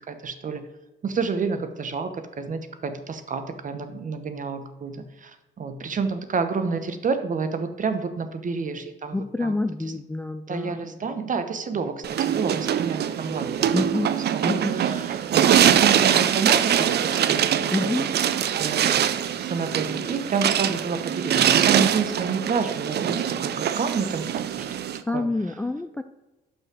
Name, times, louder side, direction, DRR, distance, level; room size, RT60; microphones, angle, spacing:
voice 1, 0.1-0.7 1.0-9.6 9.9-10.0 10.5-14.0 14.3-18.3 18.6-18.9 19.4-24.3 24.6-24.7 25.1-25.3, right 5 dB, 40° right, 9 dB, 0.9 m, -29 dB
voice 2, 9.1-11.0 13.7-14.1 14.4-14.8 17.7-18.1 25.1-26.0, left 2 dB, 10° left, 10 dB, 0.3 m, -27 dB
sound 1, 12.0-25.0, right 9 dB, 55° right, 0.5 m, -23 dB
5.7 x 5.6 x 6.1 m, 1.1 s
cardioid pair, 90°, 20 cm